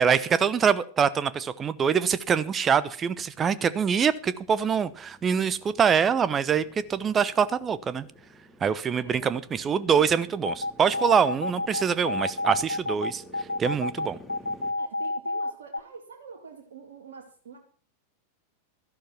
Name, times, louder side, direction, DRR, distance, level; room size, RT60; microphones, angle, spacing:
voice 1, 0.0-6.6 6.9-8.1 8.6-13.2 13.6-14.2, right 7 dB, 20° right, 0.9 m, -24 dB
Motorcycle, 2.4-14.7, equal, 5° left, 2.5 m, -52 dB
voice 2, 8.9-9.3 11.0-11.3 14.8-17.6, right 5 dB, 60° right, 2.4 m, -46 dB
sound 1, 10.4-15.8, left 2 dB, 80° left, 0.7 m, -29 dB
13.5 x 11.5 x 5.8 m
figure-of-eight pair, 90°, 0 cm